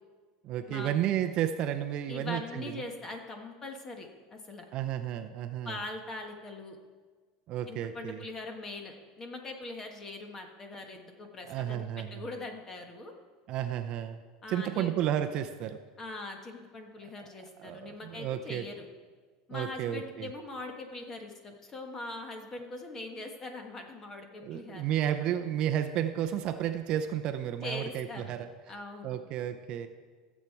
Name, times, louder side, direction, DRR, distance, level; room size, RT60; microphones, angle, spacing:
voice 1, 0.4-2.8 4.7-5.7 7.5-8.2 11.5-12.2 13.5-14.2 14.5-15.8 17.6-18.6 19.5-20.3 24.4-28.5 29.0-29.9, right 10 dB, 45° right, 8 dB, 0.6 m, -32 dB
voice 2, 2.1-4.6 5.6-6.8 7.7-11.9 12.1-13.1 14.4-14.9 16.0-18.8 19.5-24.8 27.6-28.3 28.7-29.2, left 2 dB, 20° left, 4 dB, 1.3 m, -41 dB
15.0 x 7.4 x 4.6 m, 1.5 s
supercardioid pair, 155°, 2 cm